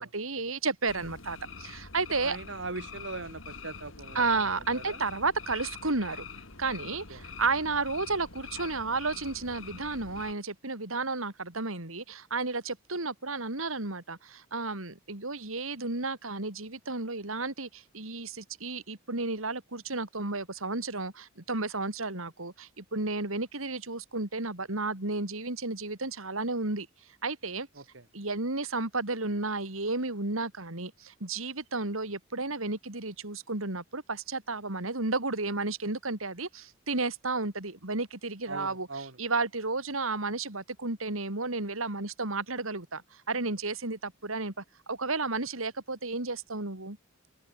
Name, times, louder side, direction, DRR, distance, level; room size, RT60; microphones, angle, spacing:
voice 1, 0.0-2.4 4.1-6.3 6.6-26.9 27.2-27.7 28.1-47.0, right 3 dB, 75° right, 3.5 m, -32 dB
sound 1, 0.9-10.3, left 5 dB, 65° left, 2.8 m, -45 dB
voice 2, 2.2-5.0 7.1-7.2 27.8-28.0 38.5-39.2, right 3 dB, 60° right, 2.0 m, -40 dB
open air
head